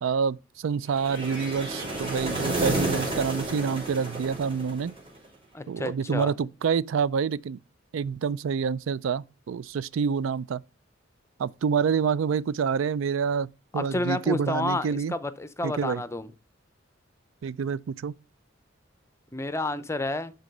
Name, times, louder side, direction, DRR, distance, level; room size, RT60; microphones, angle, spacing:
voice 1, 0.0-4.9 5.7-7.6 7.9-10.6 11.4-13.5 13.7-15.1 15.6-16.0 17.4-18.1, right 6 dB, 75° right, 0.4 m, -27 dB
sound 1, 0.9-5.2, right 2 dB, 30° right, 3.9 m, -31 dB
voice 2, 5.5-6.3 13.7-16.3 19.3-20.3, left 2 dB, 15° left, 0.6 m, -30 dB
11.5 x 4.0 x 5.3 m
head